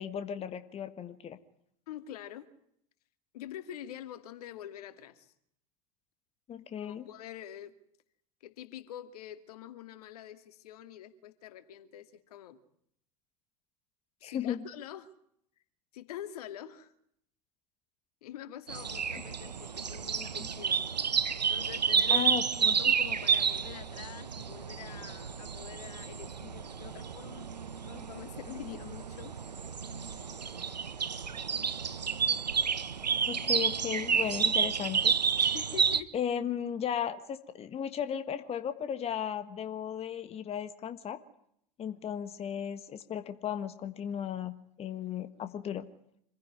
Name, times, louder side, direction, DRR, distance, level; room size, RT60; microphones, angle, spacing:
voice 1, 0.0-1.4 6.5-7.0 14.2-14.6 22.1-22.7 33.3-35.1 36.1-41.2 41.8-44.5 44.8-45.9, left 9 dB, 30° left, 10 dB, 1.5 m, -35 dB
voice 2, 1.9-2.5 3.3-5.3 6.8-7.7 8.4-12.6 14.2-15.1 15.9-16.9 18.2-20.8 21.5-22.3 22.6-27.5 27.8-29.3 35.5-36.2, left 11 dB, 65° left, 10 dB, 2.4 m, -45 dB
sound 1, 18.7-36.0, right 6 dB, 85° right, 1.1 m, -30 dB
27.0 x 16.0 x 9.6 m, 0.71 s
hypercardioid pair, 90°, 21 cm